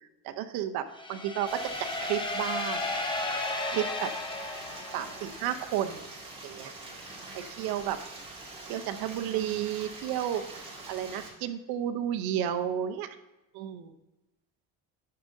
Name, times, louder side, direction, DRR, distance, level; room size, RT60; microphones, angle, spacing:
voice 1, 0.2-0.8 1.1-1.5 2.0-2.8 3.7-4.1 4.9-6.1 6.4-6.7 7.3-8.0 8.6-10.4 10.9-13.1 13.5-13.9, right 10 dB, 65° right, 8 dB, 0.8 m, -32 dB
sound 1, 0.9-5.7, left 2 dB, 10° left, 0.8 m, -34 dB
Stream, 1.5-11.3, right 2 dB, 15° right, 1.9 m, -45 dB
11.0 x 6.6 x 2.7 m, 1.0 s
cardioid pair, 140°, 38 cm